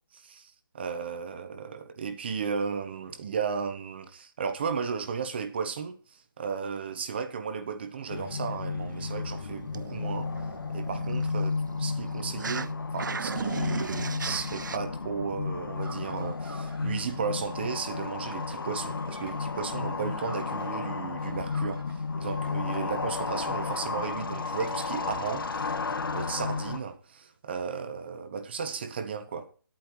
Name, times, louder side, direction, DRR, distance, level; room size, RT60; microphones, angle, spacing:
voice 1, 0.1-10.3 10.7-25.7 26.1-29.5, right 6 dB, 25° right, 1.0 m, -35 dB
sound 1, 8.1-26.8, left 4 dB, 65° left, 2.3 m, -33 dB
sound 2, 8.9-12.7 13.0-14.8, right 5 dB, 55° right, 0.6 m, -37 dB
sound 3, 15.8-20.9 21.2-26.7, right 3 dB, 75° right, 3.8 m, -52 dB
19.0 x 8.6 x 3.1 m
hypercardioid pair, 175°, 12 cm